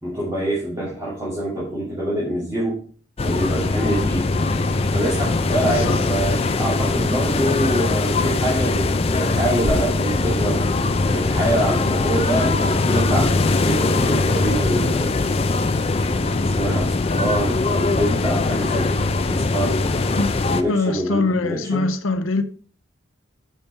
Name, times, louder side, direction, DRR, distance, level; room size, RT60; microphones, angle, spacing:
voice 1, 0.0-2.8 3.2-4.3 4.9-10.7 11.1-13.3 13.6-15.3 16.0-20.0 20.5-21.8, right 1 dB, 15° right, 2.3 m, -25 dB
sound 1, 3.2-20.6, left 3 dB, 30° left, 0.4 m, -21 dB
voice 2, 5.6-6.0 20.2-20.3 20.7-22.4, left 3 dB, 90° left, 0.7 m, -22 dB
7.0 x 5.6 x 4.4 m
head